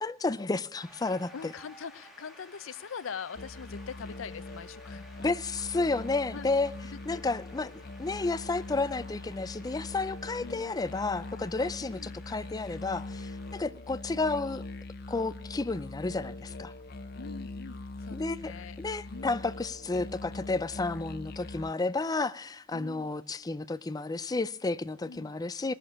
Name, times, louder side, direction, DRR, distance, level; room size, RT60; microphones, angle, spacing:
voice 1, 0.0-1.3 5.2-6.7 7.1-7.7 8.0-14.6 15.1-16.7 18.1-18.5 18.8-25.7, left 3 dB, 20° left, 0.4 m, -31 dB
Shout / Cheering / Applause, 0.8-13.6, left 1 dB, ahead, 2.2 m, -55 dB
voice 2, 1.3-5.1 6.3-6.5 6.9-7.3 10.4-10.8 11.8-12.2 13.6-13.8 17.1-18.8 19.1-19.4 22.7-23.1 25.0-25.3, left 6 dB, 80° left, 0.5 m, -43 dB
sound 1, 3.4-21.7, left 2 dB, 50° left, 0.8 m, -42 dB
19.5 x 6.8 x 7.2 m
head